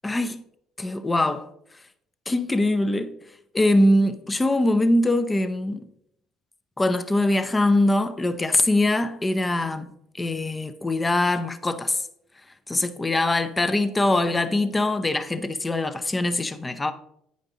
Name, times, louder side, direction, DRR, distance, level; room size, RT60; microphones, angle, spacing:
voice 1, 0.0-0.4 0.8-1.5 2.3-3.1 3.5-5.9 6.8-9.9 10.2-12.0 12.7-16.9, left 1 dB, 20° left, 0.7 m, -22 dB
9.0 x 5.2 x 3.8 m
supercardioid pair, 90°, 0 cm